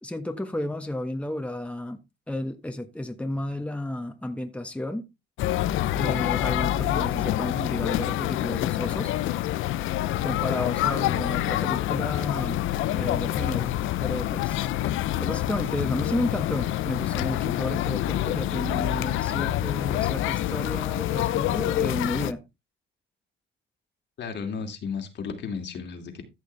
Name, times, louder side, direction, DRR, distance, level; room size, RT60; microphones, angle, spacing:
voice 1, 0.0-2.0 2.3-5.0 5.9-9.1 10.2-12.6 12.9-13.7 14.0-14.7 15.2-22.4, left 1 dB, 5° left, 1.4 m, -32 dB
sound 1, 5.4-22.3, left 13 dB, 85° left, 0.6 m, -27 dB
voice 2, 24.2-26.2, left 5 dB, 65° left, 2.7 m, -34 dB
14.0 x 6.4 x 3.4 m
cardioid pair, 90°, 20 cm